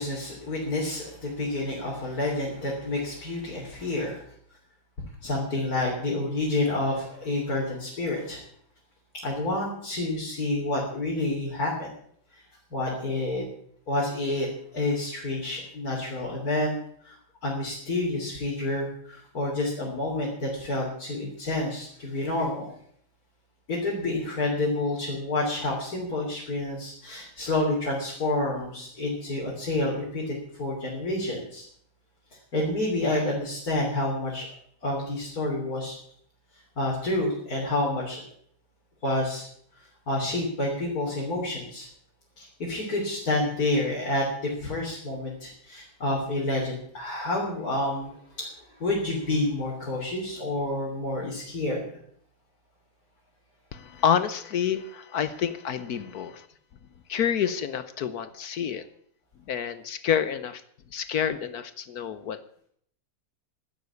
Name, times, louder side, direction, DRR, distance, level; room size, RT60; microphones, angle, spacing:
voice 1, 0.0-4.2 5.2-8.4 9.2-11.9 12.3-12.4 12.7-13.4 13.9-16.8 17.0-17.2 17.4-22.7 23.7-31.6 32.5-34.5 34.8-36.0 36.8-38.2 39.0-39.5 39.7-41.9 42.4-51.8, left 2 dB, 40° left, -4 dB, 3.9 m, -29 dB
voice 2, 53.7-56.5 57.1-58.9 59.5-60.6 60.9-62.4, left 8 dB, 60° left, 14 dB, 1.0 m, -28 dB
12.0 x 11.0 x 8.4 m, 0.64 s
omnidirectional pair, 2.4 m